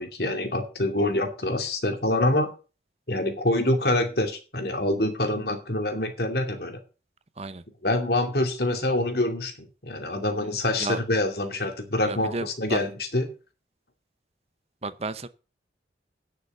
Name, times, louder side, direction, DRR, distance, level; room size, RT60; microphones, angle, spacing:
voice 1, 0.0-2.5 3.1-6.8 7.8-13.3, left 1 dB, 60° left, 2.6 m, -26 dB
voice 2, 12.1-12.9 14.8-15.3, right 3 dB, 35° right, 0.7 m, -32 dB
9.9 x 7.0 x 6.8 m
head